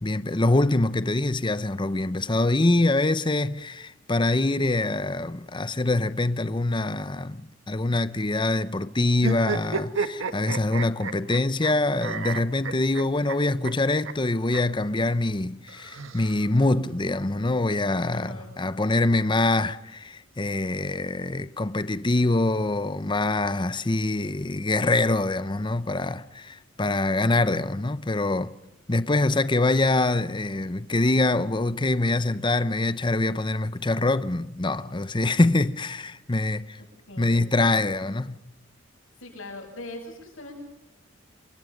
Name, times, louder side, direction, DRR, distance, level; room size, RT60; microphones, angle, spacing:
voice 1, 0.0-28.5 28.9-36.8 37.2-38.4, left 2 dB, 25° left, 0.8 m, -24 dB
sound 1, 9.2-11.7 12.0-13.4 13.6-13.7 14.0-14.1 14.5-14.6 15.7-16.7, right 4 dB, 80° right, 1.6 m, -31 dB
voice 2, 18.1-18.5 36.8-37.9 39.2-40.6, left 2 dB, 90° left, 7.4 m, -41 dB
28.5 x 24.0 x 5.2 m
head